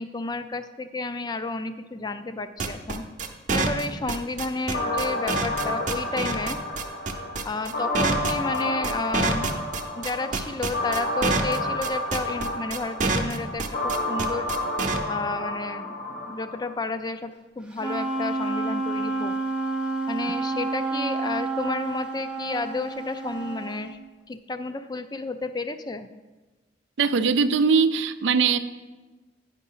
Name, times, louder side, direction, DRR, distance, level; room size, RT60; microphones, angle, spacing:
voice 1, 0.0-3.0 3.5-6.6 7.4-9.5 10.0-14.5 15.1-19.3 20.1-24.0 24.3-26.1, left 3 dB, 25° left, 10 dB, 0.4 m, -31 dB
sound 1, 2.6-15.0, right 3 dB, 45° right, 0.7 m, -26 dB
sound 2, 4.7-16.7, left 1 dB, 60° left, 1.4 m, -30 dB
Wind instrument woodwind instrument, 17.8-23.9, right 3 dB, 5° right, 0.7 m, -29 dB
voice 2, 27.0-28.6, right 5 dB, 90° right, 11 dB, 0.5 m, -21 dB
10.0 x 5.2 x 5.5 m, 1.2 s
head